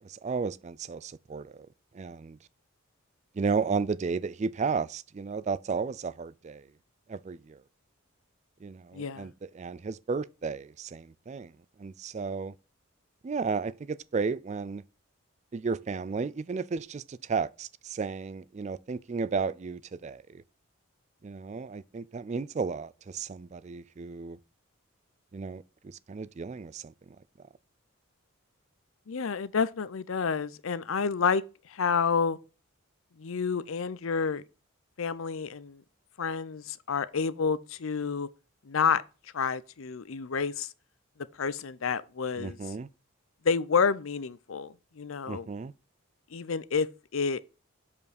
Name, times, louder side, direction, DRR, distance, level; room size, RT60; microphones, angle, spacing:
voice 1, 0.0-1.7 1.9-2.4 3.3-6.7 7.1-7.6 8.6-11.5 11.8-12.5 13.2-14.8 15.5-20.4 21.2-24.4 25.3-26.9 42.4-42.9 45.3-45.7, right 5 dB, 35° right, 0.3 m, -33 dB
voice 2, 8.9-9.3 29.1-31.4 31.7-32.4 33.2-34.4 35.0-35.8 36.2-38.3 38.7-39.0 39.3-40.7 41.4-42.6 43.4-45.5 46.3-46.9 47.1-47.4, left 5 dB, 70° left, 0.6 m, -29 dB
7.0 x 5.4 x 4.2 m
head